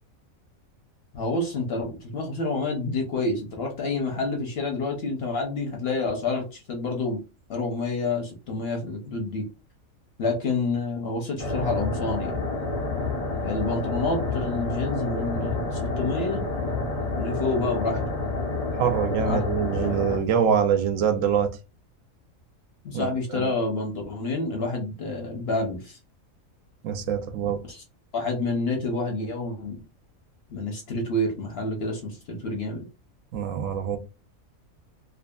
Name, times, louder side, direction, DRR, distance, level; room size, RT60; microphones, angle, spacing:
voice 1, 1.1-7.2 7.5-9.5 10.2-12.3 13.4-16.5 17.1-18.0 19.2-19.4 22.8-26.0 27.7-27.8 28.1-29.8 30.5-32.8, left 2 dB, 60° left, 0.7 m, -28 dB
sound 1, 11.4-20.2, left 3 dB, 90° left, 0.3 m, -29 dB
voice 2, 18.8-21.5 22.9-23.5 26.8-27.6 33.3-34.0, right 7 dB, 70° right, 0.9 m, -24 dB
2.6 x 2.4 x 2.2 m
omnidirectional pair, 1.5 m